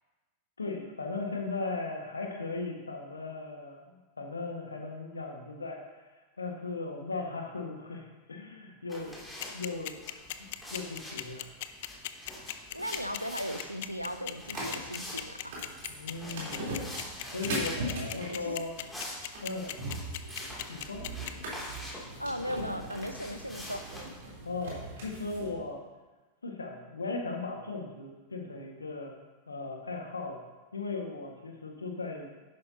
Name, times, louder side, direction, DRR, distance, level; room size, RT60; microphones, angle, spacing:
voice 1, 0.6-5.8 6.4-9.2 9.5-10.0 10.7-11.5 12.4-12.6 15.9-16.8 17.3-18.7 19.4-19.8 20.7-21.1 24.5-25.8 26.4-29.2 29.5-30.4 30.7-32.3, left 3 dB, 75° left, 2 dB, 1.7 m, -37 dB
sound 1, 8.9-24.1, left 1 dB, 5° left, 2.8 m, -46 dB
sound 2, 9.4-21.3, left 16 dB, 50° left, 0.5 m, -37 dB
voice 2, 12.7-15.6 18.0-18.6 22.2-23.9, equal, 90° right, 8 dB, 0.7 m, -37 dB
sound 3, 14.5-25.5, right 1 dB, 55° right, 3.7 m, -40 dB
10.5 x 10.5 x 2.9 m, 1.2 s
figure-of-eight pair, 90°, 0 cm